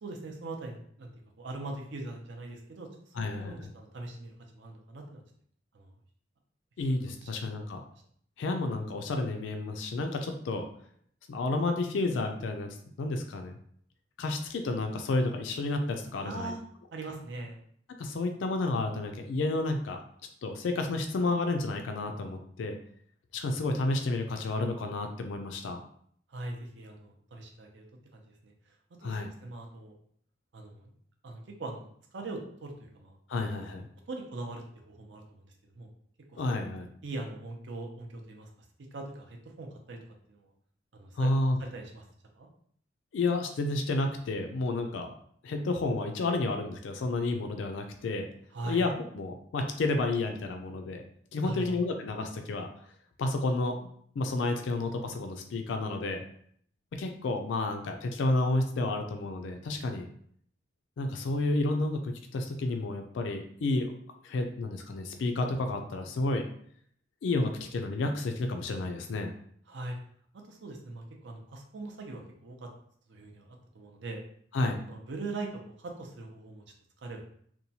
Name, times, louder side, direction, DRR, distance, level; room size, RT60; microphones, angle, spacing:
voice 1, 0.0-1.1 1.4-2.9 3.2-5.2 5.7-5.9 7.2-7.4 16.2-16.6 16.9-17.6 26.3-27.8 28.1-28.5 29.0-29.9 30.5-30.9 31.2-33.4 34.1-35.9 36.3-36.6 37.0-38.5 38.9-40.0 40.3-40.5 40.9-41.3 41.6-42.0 42.4-42.5 48.5-48.8 51.4-51.8 69.7-70.0 70.4-72.7 73.1-74.2 74.9-75.5 75.8-76.6 77.0-77.2, right 2 dB, 70° right, 2 dB, 0.6 m, -41 dB
voice 2, 3.2-3.5 6.8-7.8 8.4-10.6 11.3-13.5 14.2-16.5 18.0-20.0 20.4-22.8 23.3-25.8 29.0-29.3 33.3-33.9 36.4-36.9 41.2-41.6 43.1-45.1 45.4-48.3 48.6-51.0 51.3-52.7 53.2-53.9 54.2-56.2 57.0-60.1 61.0-63.9 64.2-66.4 67.2-69.3 74.5-74.8, left 2 dB, 80° left, 5 dB, 0.4 m, -31 dB
2.9 x 2.2 x 2.7 m, 0.63 s
head